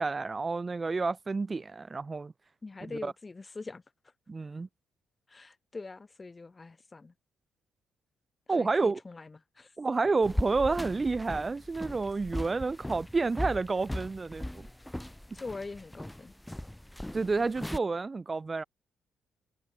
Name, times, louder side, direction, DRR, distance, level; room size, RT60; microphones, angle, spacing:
voice 1, 0.0-2.3 3.0-3.1 4.3-4.7 8.5-9.0 9.8-14.7 17.1-18.6, right 3 dB, 25° right, 1.1 m, -30 dB
voice 2, 2.6-3.8 5.3-7.1 8.6-9.7 15.3-16.3, left 3 dB, 25° left, 1.8 m, -43 dB
sound 1, 10.2-17.8, left 1 dB, 5° left, 0.4 m, -38 dB
cardioid pair, 90°, 0 cm